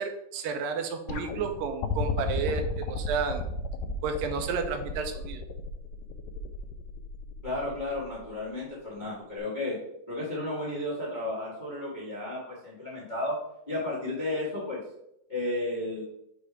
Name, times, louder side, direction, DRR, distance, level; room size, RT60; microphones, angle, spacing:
voice 1, 0.0-3.4 4.0-5.4, right 5 dB, 85° right, 6 dB, 2.4 m, -31 dB
sound 1, 1.1-8.3 9.4-9.5, left 4 dB, 85° left, 2.3 m, -34 dB
voice 2, 7.4-9.8 10.1-13.4 13.7-14.8 15.3-16.0, left 1 dB, 50° left, -6 dB, 0.5 m, -33 dB
6.6 x 3.3 x 4.9 m, 0.78 s
omnidirectional pair, 4.0 m